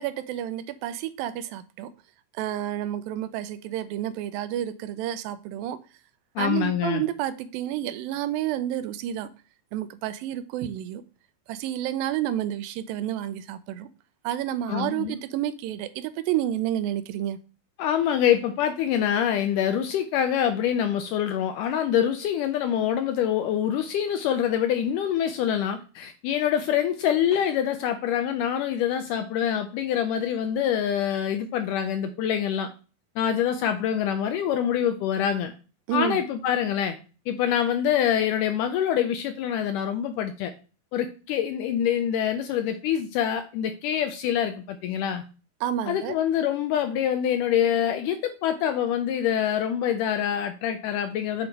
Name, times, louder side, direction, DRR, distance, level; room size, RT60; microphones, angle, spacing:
voice 1, 0.0-1.9 2.3-5.8 6.4-9.3 9.7-11.0 11.5-13.9 14.2-17.4 35.9-36.2 45.6-46.1, right 11 dB, 85° right, 13 dB, 2.2 m, -30 dB
voice 2, 6.4-7.0 14.7-15.2 17.8-32.7 33.2-35.5 35.9-37.0 37.3-40.5 40.9-45.2 45.9-51.5, left 9 dB, 80° left, 7 dB, 1.9 m, -25 dB
7.7 x 3.0 x 5.1 m, 0.35 s
omnidirectional pair, 4.1 m